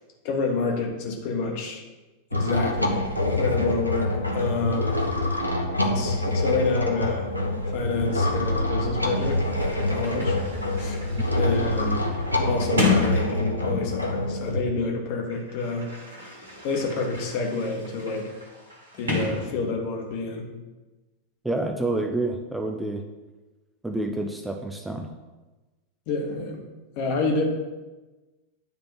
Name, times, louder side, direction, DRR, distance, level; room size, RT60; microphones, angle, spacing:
voice 1, 0.2-1.8 2.3-3.1 3.4-5.0 5.8-7.3 7.7-10.4 10.8-11.0 11.4-12.0 12.4-15.9 16.6-18.3 18.9-20.5 26.1-26.6 27.0-27.4, left 3 dB, 45° left, 2 dB, 1.4 m, -28 dB
sound 1, 2.3-14.6, left 1 dB, 90° left, 0.8 m, -26 dB
Sliding door, 9.1-14.1 15.1-20.0, left 3 dB, 70° right, 1.8 m, -32 dB
voice 2, 21.4-23.0 23.8-25.1, right 2 dB, 5° right, 4 dB, 0.6 m, -28 dB
9.7 x 3.5 x 6.3 m, 1.2 s
figure-of-eight pair, 90°, 0 cm